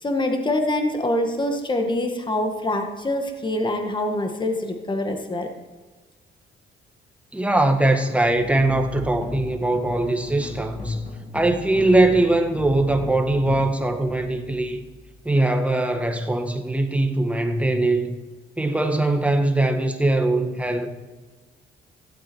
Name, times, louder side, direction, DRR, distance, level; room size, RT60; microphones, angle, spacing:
voice 1, 0.0-5.5, left 1 dB, 25° left, 1.8 m, -25 dB
voice 2, 7.3-11.0 11.3-14.8 15.2-18.2 18.6-20.9, right 2 dB, 5° right, 1.5 m, -21 dB
sound 1, 8.2-15.5, left 2 dB, 45° left, 3.8 m, -37 dB
15.5 x 8.3 x 4.6 m
cardioid pair, 90°, 20 cm